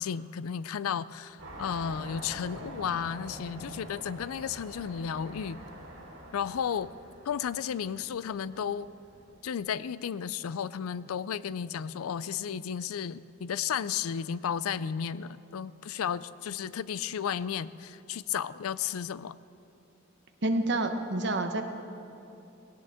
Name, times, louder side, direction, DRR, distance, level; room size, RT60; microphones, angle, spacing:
voice 1, 0.0-5.6 6.3-6.9 7.2-8.9 9.4-19.4, left 8 dB, 90° left, 17 dB, 0.4 m, -33 dB
sound 1, 1.4-9.3, right 1 dB, 70° right, 3.9 m, -46 dB
voice 2, 20.4-21.6, right 2 dB, 55° right, 6 dB, 1.0 m, -28 dB
19.0 x 17.5 x 3.6 m, 2.8 s
head